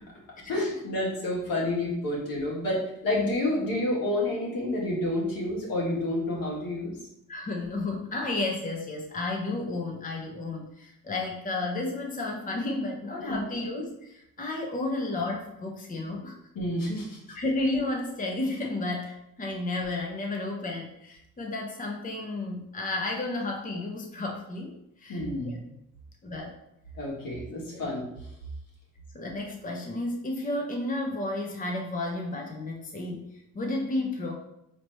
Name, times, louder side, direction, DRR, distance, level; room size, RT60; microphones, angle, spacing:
voice 1, 0.5-7.0 13.2-13.4 16.5-17.2 25.1-25.6 26.9-28.3, left 1 dB, 70° left, -3 dB, 1.4 m, -29 dB
voice 2, 7.3-16.4 17.4-24.7 25.0-25.6 26.2-26.5 27.7-27.9 29.1-34.3, left 2 dB, 25° left, 1 dB, 0.7 m, -32 dB
4.2 x 2.9 x 3.1 m, 0.82 s
hypercardioid pair, 45°, 36 cm